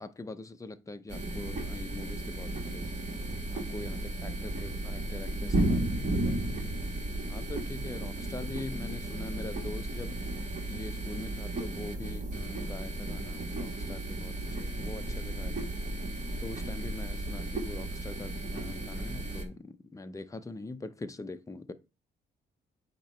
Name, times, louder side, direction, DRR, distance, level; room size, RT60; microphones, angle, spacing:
voice 1, 0.0-3.1 3.5-6.4 7.3-10.2 10.7-15.7 16.4-21.7, left 2 dB, 15° left, 0.6 m, -43 dB
sound 1, 1.1-19.5, right 1 dB, 40° right, 2.1 m, -34 dB
8.7 x 3.0 x 4.3 m
cardioid pair, 90°, 20 cm